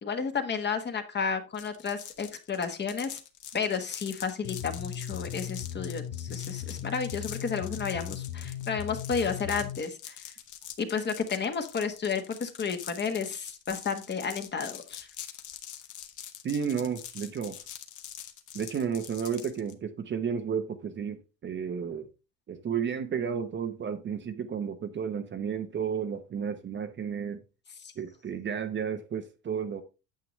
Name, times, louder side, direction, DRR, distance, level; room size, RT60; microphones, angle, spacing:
voice 1, 0.0-3.2 3.5-10.2 10.8-15.1 27.8-27.9, left 6 dB, 30° left, 1.3 m, -32 dB
sound 1, 1.5-19.7, left 10 dB, 50° left, 1.3 m, -44 dB
sound 2, 4.4-9.8, left 10 dB, 80° left, 1.0 m, -37 dB
voice 2, 16.4-17.6 18.5-22.1 22.5-27.4 28.0-29.8, right 7 dB, 30° right, 0.8 m, -32 dB
9.2 x 7.7 x 3.1 m
cardioid pair, 140°, 38 cm